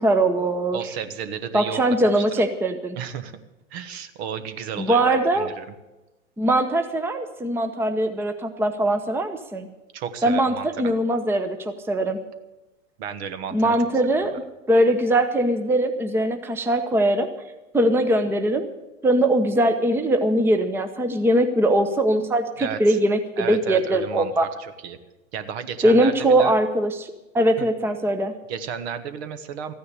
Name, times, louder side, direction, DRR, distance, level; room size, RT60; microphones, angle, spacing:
voice 1, 0.0-0.8 1.5-3.0 4.8-5.5 6.4-9.7 10.2-12.2 13.5-14.3 14.7-17.3 17.7-18.7 19.0-24.5 25.8-28.3, right 1 dB, 5° right, 8 dB, 0.8 m, -21 dB
voice 2, 0.7-1.8 2.1-2.4 2.9-3.3 3.7-5.6 9.9-10.9 13.0-13.8 14.2-14.3 22.6-23.0 23.4-25.0 25.3-26.6 27.6-27.7 28.5-29.7, right 7 dB, 55° right, 11 dB, 1.3 m, -33 dB
14.0 x 9.5 x 8.1 m, 1.0 s
figure-of-eight pair, 95°, 39 cm